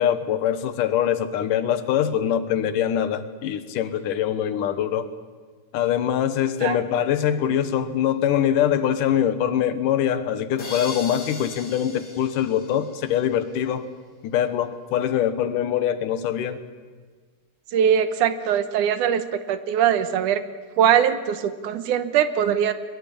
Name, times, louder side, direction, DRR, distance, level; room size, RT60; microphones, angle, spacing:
voice 1, 0.0-5.1 5.7-13.9 14.2-16.6, left 10 dB, 85° left, 12 dB, 2.9 m, -23 dB
sound 1, 10.6-13.4, left 2 dB, 30° left, 3.5 m, -39 dB
voice 2, 17.7-19.2 19.5-20.4 20.8-22.7, right 9 dB, 80° right, 12 dB, 2.6 m, -21 dB
22.0 x 21.5 x 8.6 m, 1.5 s
omnidirectional pair, 3.6 m